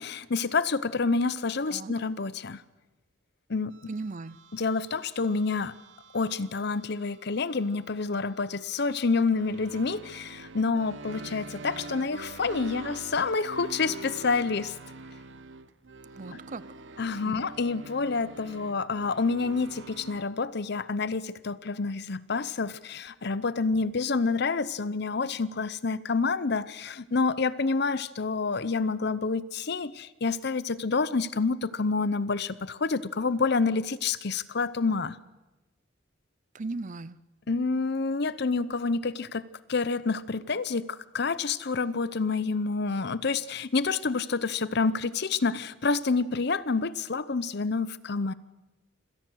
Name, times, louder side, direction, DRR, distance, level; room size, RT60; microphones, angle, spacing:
voice 1, 0.0-2.6 3.5-3.8 4.5-5.7 6.1-14.7 17.0-35.2 37.5-39.4 39.7-40.8 41.1-48.3, left 4 dB, 55° left, 16 dB, 0.7 m, -28 dB
sound 1, 3.7-20.3, right 3 dB, 65° right, 0.9 m, -45 dB
voice 2, 3.9-4.4 16.1-16.6 17.2-17.4 36.5-37.2, right 3 dB, 40° right, 18 dB, 0.6 m, -37 dB
26.5 x 17.5 x 6.4 m, 1.1 s
head